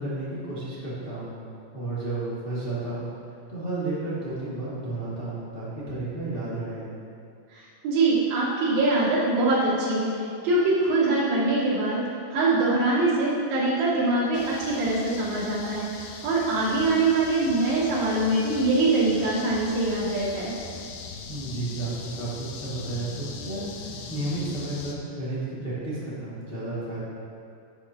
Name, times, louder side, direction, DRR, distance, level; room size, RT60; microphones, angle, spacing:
voice 1, 0.0-1.4 1.7-3.1 3.5-6.9 21.3-27.0, right 2 dB, 65° left, -10 dB, 0.5 m, -32 dB
voice 2, 7.5-20.5, right 2 dB, 55° right, -9 dB, 4.1 m, -23 dB
sound 1, 14.3-24.9, left 4 dB, 85° left, 3.1 m, -40 dB
11.0 x 10.5 x 2.9 m, 2.5 s
omnidirectional pair, 5.2 m